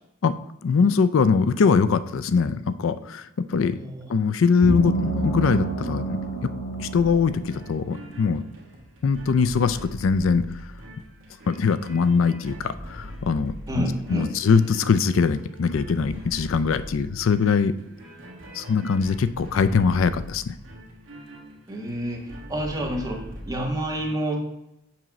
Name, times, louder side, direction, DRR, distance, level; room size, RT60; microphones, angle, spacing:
voice 1, 0.6-3.8 4.1-6.5 6.8-8.4 9.0-10.5 11.5-17.7 18.5-20.5, left 5 dB, 70° left, 13 dB, 0.4 m, -22 dB
voice 2, 3.5-4.0 13.7-14.3 21.7-24.4, right 1 dB, 15° right, -1 dB, 1.4 m, -29 dB
sound 1, 4.6-8.2, right 2 dB, 55° left, 1.7 m, -29 dB
sound 2, 6.9-24.1, equal, 65° right, 1.5 m, -42 dB
7.3 x 3.0 x 5.9 m, 0.86 s
head